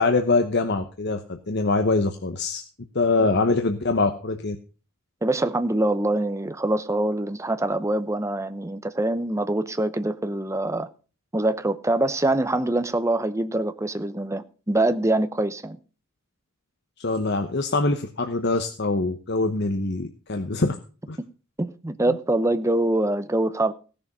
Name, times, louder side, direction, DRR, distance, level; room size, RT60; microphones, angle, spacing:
voice 1, 0.0-2.6 2.9-4.6 17.0-20.7 21.1-21.2 22.1-22.2, left 3 dB, 55° left, 1.0 m, -24 dB
voice 2, 5.2-10.9 11.3-15.8 21.2-21.3 21.6-23.7, right 1 dB, 15° right, 0.7 m, -24 dB
15.5 x 6.8 x 5.4 m
head